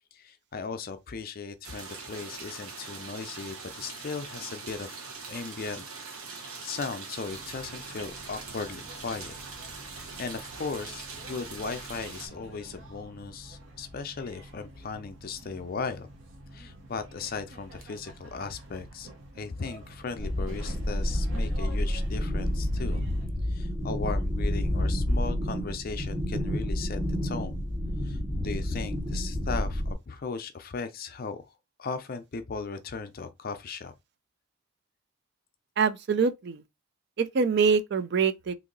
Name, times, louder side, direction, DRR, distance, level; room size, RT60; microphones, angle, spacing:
voice 1, 0.1-5.0 5.3-5.8 6.3-9.3 9.9-16.1 16.5-19.1 19.4-23.0 23.5-27.6 28.0-31.4 31.8-33.9, left 4 dB, 45° left, 0.4 m, -37 dB
sound 1, 1.6-12.3, right 4 dB, 80° right, 1.3 m, -42 dB
sound 2, 7.3-23.3, right 1 dB, 65° right, 0.8 m, -48 dB
sound 3, 20.2-29.9, equal, 10° right, 0.7 m, -29 dB
voice 2, 35.8-36.6 37.2-38.5, right 5 dB, 50° right, 0.4 m, -24 dB
2.9 x 2.7 x 3.8 m
head